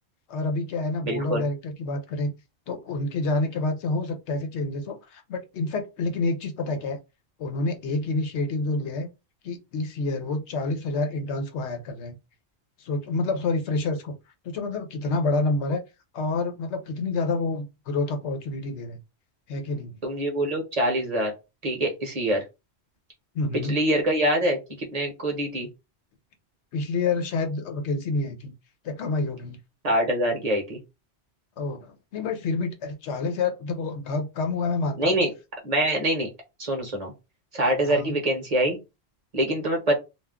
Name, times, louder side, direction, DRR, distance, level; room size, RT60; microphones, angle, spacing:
voice 1, 0.3-2.3 2.7-7.0 7.4-9.1 9.4-12.2 12.8-14.1 14.4-15.8 16.1-19.0 19.5-20.0 23.3-23.9 26.7-28.5 28.8-29.6 31.6-35.2 37.9-38.2, left 3 dB, 85° left, 1.0 m, -28 dB
voice 2, 1.1-1.4 20.0-21.3 21.6-22.4 23.6-25.7 29.8-30.8 35.0-35.3 35.6-36.3 36.6-37.1 37.5-38.8 39.3-39.9, right 1 dB, 40° right, 0.8 m, -24 dB
2.4 x 2.2 x 3.5 m
omnidirectional pair, 1.1 m